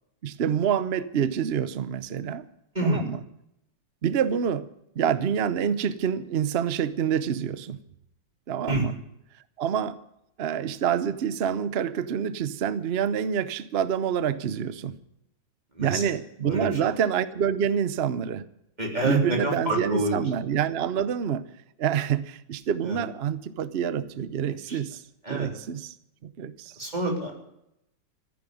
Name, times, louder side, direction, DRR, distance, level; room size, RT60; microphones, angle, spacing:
voice 1, 0.2-2.4 2.8-3.2 4.0-4.7 4.9-7.8 8.5-9.0 9.6-10.0 10.4-15.0 15.8-18.4 19.0-21.4 21.8-25.0 25.3-25.9 26.2-26.8, right 8 dB, 90° right, 14 dB, 0.5 m, -27 dB
voice 2, 2.8-3.1 8.7-8.8 15.8-16.0 16.4-16.7 18.8-20.2 22.9-23.0 24.7-24.8 25.3-25.5 26.8-27.4, right 1 dB, 20° right, 0 dB, 3.6 m, -27 dB
14.5 x 10.0 x 9.2 m, 0.80 s
omnidirectional pair, 2.3 m